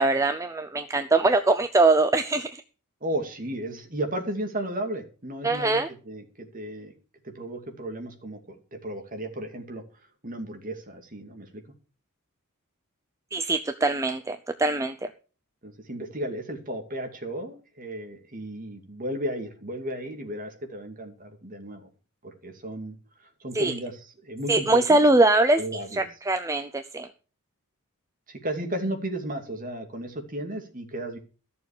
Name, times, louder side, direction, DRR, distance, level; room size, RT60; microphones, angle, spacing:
voice 1, 0.0-2.6 5.4-5.9 13.3-14.9 23.5-23.7 24.5-27.1, right 2 dB, 15° right, 8 dB, 0.6 m, -22 dB
voice 2, 3.0-6.9 7.2-9.8 10.2-11.6 15.6-21.9 22.2-25.0 25.5-26.1 28.3-31.2, right 1 dB, 40° right, 4 dB, 2.5 m, -34 dB
14.0 x 7.0 x 6.7 m, 0.37 s
head